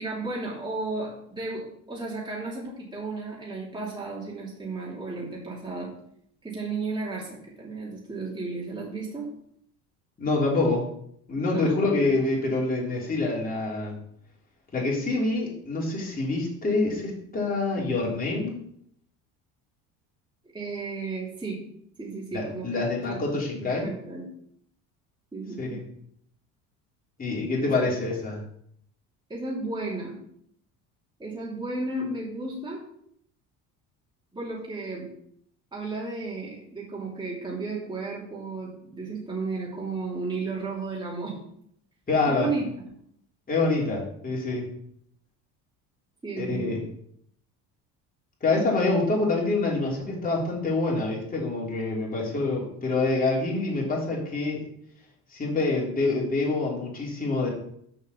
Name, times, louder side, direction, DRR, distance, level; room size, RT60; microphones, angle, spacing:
voice 1, 0.0-5.9 6.4-9.3 11.5-11.7 20.5-21.6 22.0-23.3 23.6-24.2 25.3-25.8 27.6-27.9 29.3-30.2 31.2-32.8 34.3-35.1 35.7-41.3 42.3-42.9 46.2-46.8, right 3 dB, 15° right, -6 dB, 3.1 m, -34 dB
voice 2, 10.2-10.9 11.3-13.9 14.7-18.5 22.3-23.9 25.6-25.8 27.2-28.4 42.1-42.5 43.5-44.6 46.4-46.8 48.4-54.6 55.3-57.5, left 3 dB, 25° left, -3 dB, 3.5 m, -26 dB
6.9 x 5.6 x 7.1 m, 0.69 s
cardioid pair, 115°, 34 cm